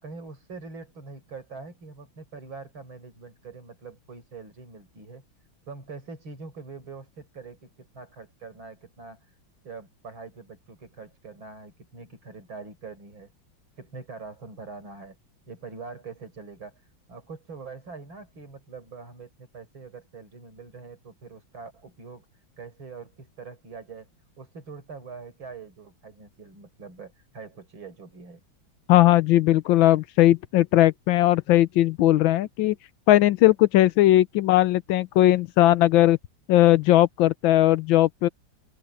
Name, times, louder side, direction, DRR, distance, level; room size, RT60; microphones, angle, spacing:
voice 1, 0.0-5.2 5.7-9.3 9.6-13.3 13.8-15.2 15.5-16.8 17.1-22.3 22.6-24.1 24.4-28.4, right 4 dB, 75° right, 6.1 m, -43 dB
voice 2, 28.9-32.8 33.1-36.2 36.5-38.3, left 14 dB, 80° left, 1.4 m, -19 dB
open air
omnidirectional pair, 2.2 m